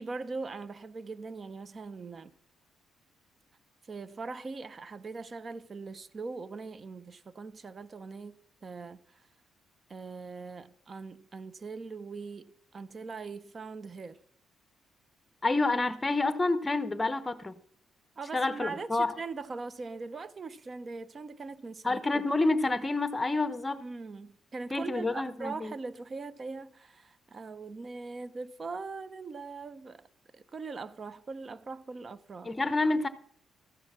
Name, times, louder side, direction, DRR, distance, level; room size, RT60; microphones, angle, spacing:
voice 1, 0.0-2.3 3.8-8.4 8.6-9.3 9.9-14.2 18.2-22.2 23.8-30.1 30.3-32.5, right 4 dB, 40° right, 0.7 m, -41 dB
voice 2, 15.4-17.5 18.3-19.1 21.8-23.8 24.7-25.7 32.4-33.1, left 2 dB, 20° left, 0.9 m, -28 dB
13.5 x 6.4 x 6.1 m
cardioid pair, 90°, 0 cm